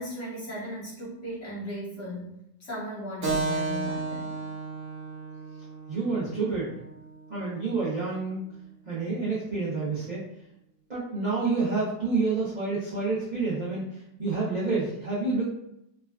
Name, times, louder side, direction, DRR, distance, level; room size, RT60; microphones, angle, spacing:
voice 1, 0.0-2.3 2.6-4.3, equal, 45° left, -8 dB, 1.2 m, -36 dB
Keyboard (musical), 3.2-8.3, right 3 dB, 55° right, 1.0 m, -34 dB
voice 2, 5.9-6.7 7.3-8.4 8.9-10.2 10.9-13.8 14.2-15.4, right 3 dB, 75° right, -10 dB, 0.4 m, -28 dB
3.6 x 2.3 x 2.3 m, 0.79 s
omnidirectional pair, 2.0 m